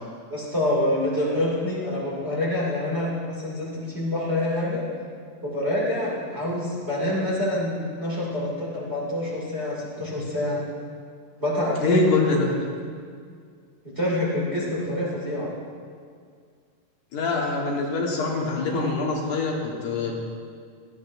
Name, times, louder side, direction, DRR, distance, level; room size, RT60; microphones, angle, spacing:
voice 1, 0.3-4.8 5.4-10.6 11.4-12.0 13.8-15.5, left 1 dB, 20° right, -6 dB, 2.4 m, -26 dB
voice 2, 11.8-12.5 17.1-20.1, left 3 dB, 70° left, -2 dB, 3.0 m, -24 dB
17.5 x 13.0 x 2.6 m, 2.1 s
omnidirectional pair, 3.8 m